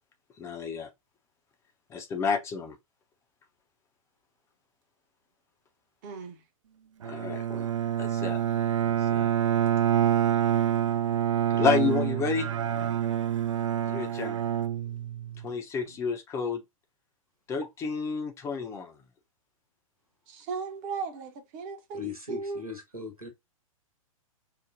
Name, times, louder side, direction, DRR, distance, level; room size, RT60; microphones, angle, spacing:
voice 1, 0.4-0.9 1.9-2.7 7.0-7.7 8.0-8.4 8.8-9.3 11.5-12.5 13.8-14.4 15.4-16.6 17.5-18.9, left 5 dB, 15° left, 0.5 m, -30 dB
voice 2, 6.0-6.4 20.3-22.6, right 4 dB, 35° right, 0.8 m, -36 dB
Bowed string instrument, 7.0-15.5, right 10 dB, 60° right, 0.4 m, -27 dB
voice 3, 21.9-23.3, left 4 dB, 90° right, 1.3 m, -38 dB
4.7 x 2.1 x 2.6 m
figure-of-eight pair, 110°, 18 cm